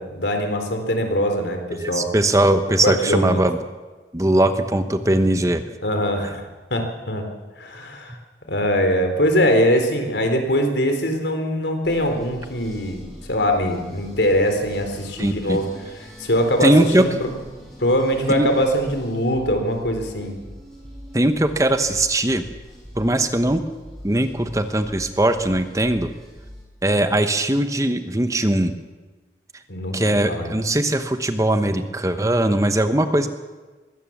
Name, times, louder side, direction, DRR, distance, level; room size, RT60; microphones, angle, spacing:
voice 1, 0.0-2.1 2.7-3.4 5.8-6.5 6.7-7.3 7.6-8.2 8.5-15.7 16.2-17.3 17.8-20.3 29.7-30.5, equal, 80° left, 5 dB, 3.6 m, -22 dB
voice 2, 1.7-3.6 4.1-5.6 6.2-6.3 15.2-15.6 16.6-17.1 18.3-18.5 21.1-22.4 23.0-23.6 24.0-26.1 26.8-28.7 29.9-33.3, right 1 dB, 20° right, 8 dB, 1.0 m, -20 dB
sound 1, 11.8-26.6, equal, ahead, 5.4 m, -42 dB
22.0 x 17.0 x 7.3 m, 1.3 s
head